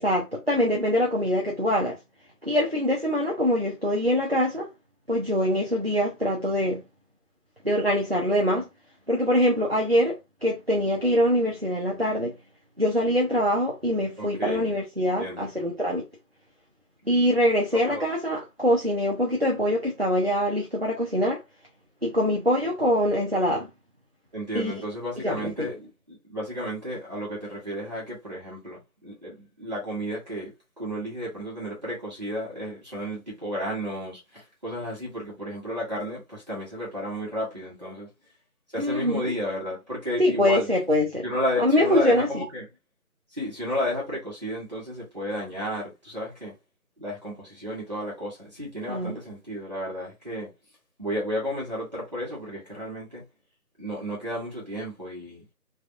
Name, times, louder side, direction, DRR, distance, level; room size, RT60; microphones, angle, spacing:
voice 1, 0.0-2.0 2.4-4.7 5.1-6.8 7.6-8.7 9.1-10.2 10.4-12.3 12.8-16.0 17.1-21.4 22.0-23.7 24.5-24.7 25.2-25.7 38.8-39.3 40.2-41.2 41.6-42.4 48.9-49.2, equal, 45° right, 0.5 m, -24 dB
voice 2, 14.2-15.5 17.8-18.0 24.3-38.1 38.7-40.7 41.2-42.7 43.3-46.5 47.0-50.5 51.0-53.2 53.8-55.4, equal, 25° right, 1.4 m, -32 dB
3.4 x 2.5 x 2.5 m
figure-of-eight pair, 165°, 46 cm